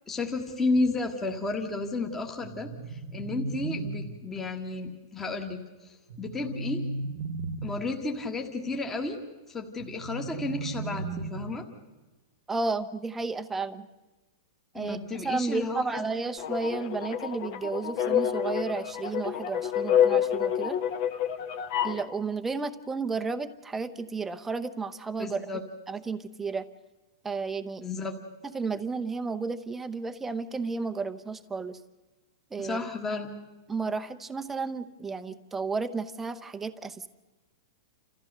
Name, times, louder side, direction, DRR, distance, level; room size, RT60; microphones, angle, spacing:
voice 1, 0.1-6.9 7.6-9.2 9.5-11.7 14.7-16.0 25.2-25.6 27.8-28.1 32.6-33.3, left 3 dB, 10° left, 2 dB, 1.6 m, -32 dB
sound 1, 2.4-4.4 6.1-8.0 9.8-11.8, right 3 dB, 60° right, 1.2 m, -36 dB
voice 2, 12.5-13.9 14.7-20.8 21.8-25.4 25.9-26.7 27.2-27.8 28.5-31.8 32.5-32.8 33.7-37.1, right 4 dB, 10° right, 9 dB, 0.8 m, -32 dB
sound 2, 16.4-22.0, left 9 dB, 45° left, 1.4 m, -28 dB
30.0 x 14.5 x 6.7 m, 1.2 s
hypercardioid pair, 155°, 3 cm